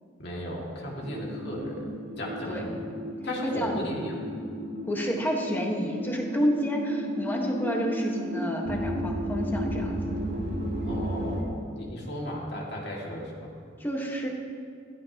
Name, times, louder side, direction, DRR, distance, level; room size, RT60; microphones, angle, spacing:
voice 1, 0.2-2.8 3.2-4.2 10.8-13.5, equal, 60° left, -2 dB, 2.3 m, -36 dB
sound 1, 1.0-11.4, equal, 60° right, 2.1 m, -33 dB
voice 2, 3.4-3.7 4.9-10.0 13.8-14.3, equal, 10° left, 0 dB, 1.5 m, -29 dB
15.5 x 14.5 x 3.0 m, 2.2 s
head